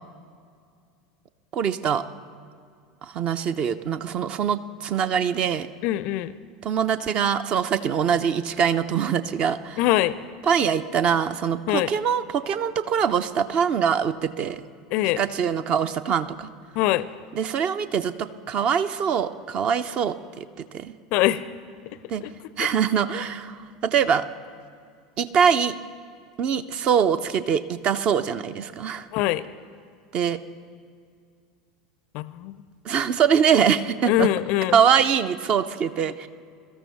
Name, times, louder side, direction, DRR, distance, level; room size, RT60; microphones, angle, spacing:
voice 1, 1.5-2.0 3.0-5.7 6.6-9.8 10.5-14.6 15.2-16.5 17.4-20.9 22.1-22.2 22.6-23.6 23.9-24.2 25.2-25.7 26.4-29.1 30.1-30.4 32.9-34.3 34.7-36.3, right 7 dB, 35° right, 13 dB, 0.5 m, -23 dB
voice 2, 5.8-6.3 9.8-10.1 11.7-11.9 14.9-15.2 16.8-17.1 21.1-21.4 22.2-22.3 22.6-22.7 29.1-29.4 32.1-32.6 34.1-34.8, left 15 dB, 45° left, 18 dB, 0.4 m, -23 dB
22.5 x 13.5 x 3.4 m, 2.3 s
figure-of-eight pair, 75°, 3 cm